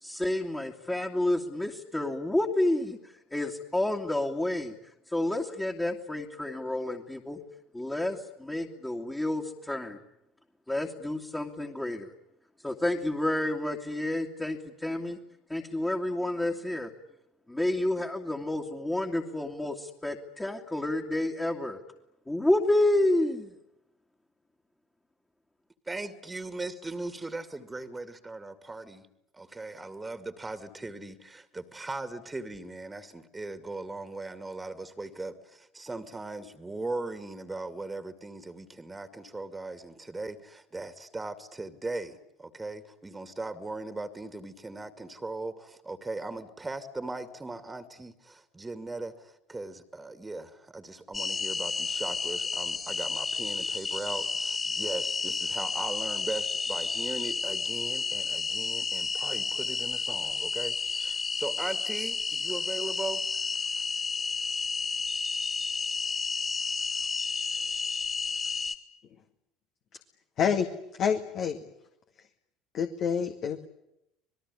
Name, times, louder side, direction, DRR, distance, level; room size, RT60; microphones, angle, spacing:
voice 1, 0.0-4.7 5.1-7.4 7.7-10.0 10.7-12.1 12.6-15.2 15.5-16.9 17.5-21.8 22.3-23.5, left 1 dB, 10° left, 1 dB, 2.6 m, -29 dB
voice 2, 25.9-29.1 29.3-63.2 63.8-63.9, right 2 dB, 15° right, 10 dB, 2.4 m, -39 dB
sound 1, 51.1-68.7, left 4 dB, 25° left, 2.8 m, -31 dB
voice 3, 70.4-70.7 71.0-71.6 72.7-73.7, left 7 dB, 45° left, 6 dB, 2.1 m, -27 dB
27.0 x 21.0 x 9.9 m, 0.81 s
figure-of-eight pair, 65°, 0 cm